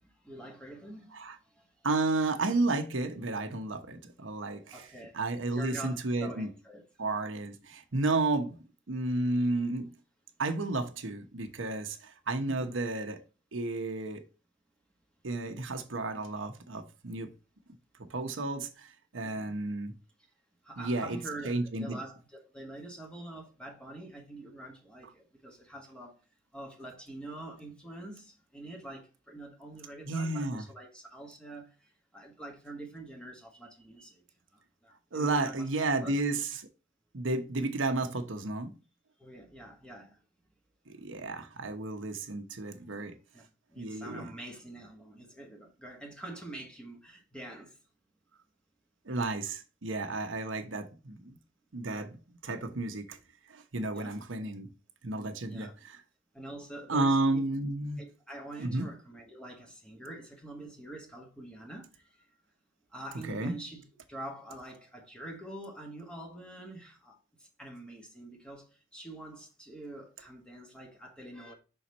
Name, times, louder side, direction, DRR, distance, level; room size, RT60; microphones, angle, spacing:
voice 1, 0.0-1.7 4.7-5.2 5.5-6.8 12.5-12.8 19.2-19.5 20.6-26.2 26.5-34.2 34.5-35.7 36.0-36.2 39.2-40.2 43.3-47.8 53.9-54.2 55.5-55.7 56.3-57.5 58.0-62.1 62.9-63.8 64.1-71.5, right 1 dB, 5° left, 1.6 m, -46 dB
voice 2, 1.8-4.9 5.1-6.5 7.0-9.9 10.4-13.2 13.5-14.2 15.2-17.3 18.0-19.9 20.8-21.2 21.4-22.0 30.0-30.6 35.1-36.5 37.1-38.7 40.9-43.2 43.8-44.3 49.1-51.4 51.7-53.2 53.5-54.7 55.0-56.0 56.9-58.0 58.6-58.9 63.2-63.6, right 2 dB, 85° right, 1.0 m, -32 dB
5.7 x 4.4 x 4.1 m
head